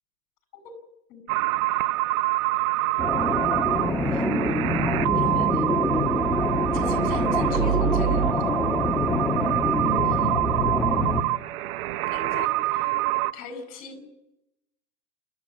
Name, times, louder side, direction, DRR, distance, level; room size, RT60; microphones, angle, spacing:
voice 1, 1.1-1.5 3.7-4.3 5.1-5.7 6.7-8.5 10.0-10.3 12.1-14.0, left 4 dB, 50° left, 10 dB, 7.7 m, -40 dB
sound 1, 1.3-13.3, right 18 dB, 60° right, 0.9 m, -26 dB
sound 2, 3.0-11.2, left 1 dB, 5° left, 1.6 m, -25 dB
29.0 x 13.5 x 7.5 m, 0.87 s
hypercardioid pair, 140°, 50 cm